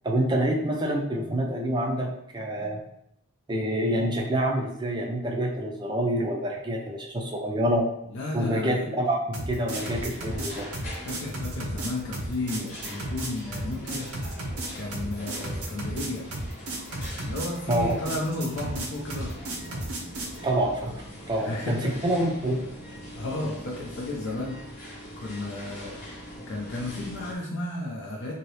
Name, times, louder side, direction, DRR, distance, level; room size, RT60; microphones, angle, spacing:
voice 1, 0.0-2.8 3.5-7.9 8.3-10.7 17.7-18.0 20.4-22.6, right 1 dB, 20° right, -1 dB, 0.5 m, -27 dB
voice 2, 8.1-8.8 11.0-14.1 14.7-16.4 17.2-19.4 21.3-22.0 23.2-26.0 26.5-28.3, left 2 dB, 55° left, -3 dB, 0.5 m, -33 dB
sound 1, 9.3-20.4, right 1 dB, 85° right, 0.7 m, -33 dB
sound 2, 9.7-27.3, equal, 35° left, 1.0 m, -42 dB
2.8 x 2.7 x 3.1 m, 0.76 s
head